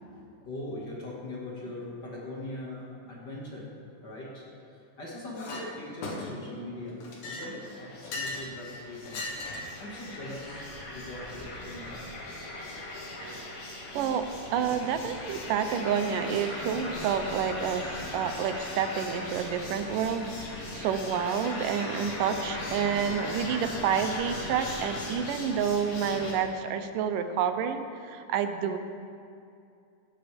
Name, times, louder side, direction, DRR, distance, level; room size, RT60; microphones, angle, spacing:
voice 1, 0.0-3.7 4.0-9.3 9.8-12.1 21.8-22.0, left 1 dB, 40° left, -5 dB, 2.0 m, -41 dB
Chink clink, 5.4-5.7 6.0-6.5 7.0-8.5 9.1-9.8, left 2 dB, 80° left, 3.1 m, -37 dB
sound 1, 7.6-26.3, left 1 dB, 55° left, 3.1 m, -39 dB
voice 2, 13.9-28.8, right 7 dB, 90° right, 9 dB, 2.3 m, -29 dB
16.0 x 12.0 x 3.4 m, 2.5 s
omnidirectional pair, 3.7 m